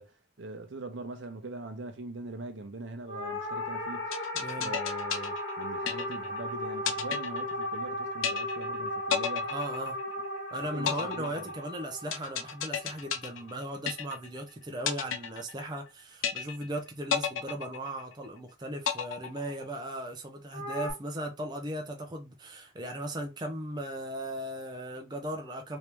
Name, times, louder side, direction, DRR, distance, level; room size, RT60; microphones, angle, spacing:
voice 1, 0.0-4.3 4.5-9.5 10.5-11.5, right 2 dB, 65° right, 0.7 m, -42 dB
sound 1, 3.1-13.6 20.5-20.9, left 1 dB, 70° left, 1.2 m, -36 dB
sound 2, 4.1-6.4 6.9-7.9 8.2-8.8 9.1-10.4 10.9-14.4 14.9-15.9 16.2-16.8 17.1-18.4 18.9-19.9, left 8 dB, 85° left, 0.6 m, -33 dB
voice 2, 4.3-4.7 9.5-10.0 10.5-25.8, right 1 dB, 20° right, 0.5 m, -37 dB
3.0 x 2.7 x 3.4 m
head